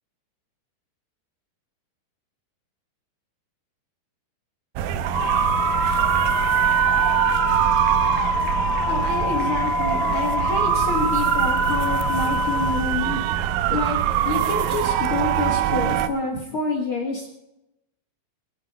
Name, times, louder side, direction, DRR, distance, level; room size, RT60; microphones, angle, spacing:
sound 1, 4.8-16.1, right 11 dB, 80° right, 2.2 m, -23 dB
sound 2, 5.1-12.8, left 3 dB, 90° left, 0.7 m, -25 dB
voice 1, 8.9-13.2 13.7-17.3, left 3 dB, 65° left, 1 dB, 1.3 m, -28 dB
21.0 x 7.4 x 5.3 m, 0.90 s
omnidirectional pair, 4.7 m